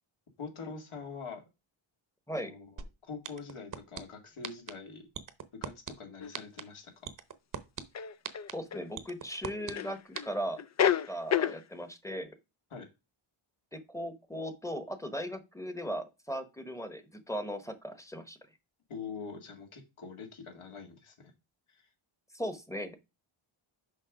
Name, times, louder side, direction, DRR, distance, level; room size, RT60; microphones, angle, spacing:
voice 1, 0.4-1.5 2.4-2.7 3.1-5.0 5.6-7.1 12.7-12.9 18.9-21.3 21.7-21.9, left 5 dB, 75° left, 3 dB, 2.3 m, -44 dB
sound 1, 2.8-2.9 3.2-4.0 4.4-4.7 5.1-5.9 6.3-6.6 7.1-7.8 8.2-8.5 9.0-9.7 10.2-10.3, right 7 dB, 40° right, 0.8 m, -37 dB
sound 2, 6.2-6.3 7.9-8.8 9.8-10.3 10.6-11.6, left 9 dB, 35° left, 0.4 m, -29 dB
voice 2, 8.5-12.3 13.7-18.4 22.3-23.0, equal, 5° left, 10 dB, 1.0 m, -38 dB
6.4 x 5.3 x 4.9 m, 0.26 s
wide cardioid pair, 155°, 50 cm